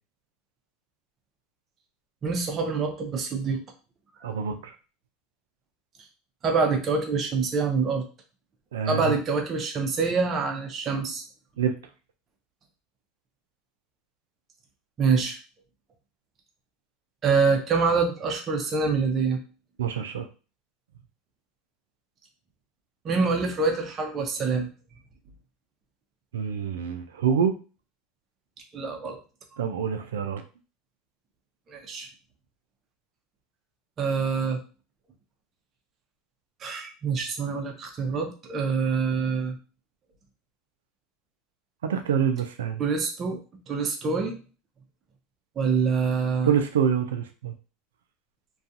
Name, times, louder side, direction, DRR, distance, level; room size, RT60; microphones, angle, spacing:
voice 1, 2.2-3.6 6.4-8.0 8.9-11.2 15.0-15.4 17.2-19.4 23.0-24.7 28.7-29.2 31.7-32.1 34.0-34.6 36.6-39.6 42.8-43.4 43.7-44.4 45.6-46.5, right 5 dB, 35° right, 3 dB, 0.6 m, -25 dB
voice 2, 4.2-4.7 8.7-9.2 11.6-11.7 19.8-20.3 26.3-27.6 29.6-30.4 41.8-42.8 46.4-47.5, right 7 dB, 90° right, 6 dB, 0.3 m, -26 dB
2.4 x 2.3 x 2.6 m, 0.34 s
hypercardioid pair, 95°, 0 cm